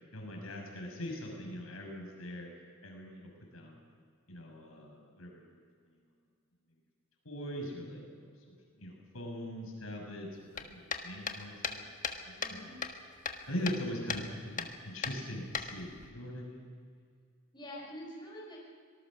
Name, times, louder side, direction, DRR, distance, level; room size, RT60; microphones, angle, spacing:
voice 1, 0.1-2.5 2.8-3.8 4.3-5.6 7.2-8.3 8.8-12.7 13.5-16.7, equal, 80° left, 1 dB, 6.2 m, -41 dB
sound 1, 10.5-12.6 12.8-13.8 14.1-14.3 14.6-14.7 15.0-16.1, left 5 dB, 35° left, 1.5 m, -37 dB
voice 2, 12.4-12.8 17.5-18.6, equal, 20° left, -3 dB, 5.3 m, -46 dB
25.5 x 19.5 x 6.3 m, 2.1 s
head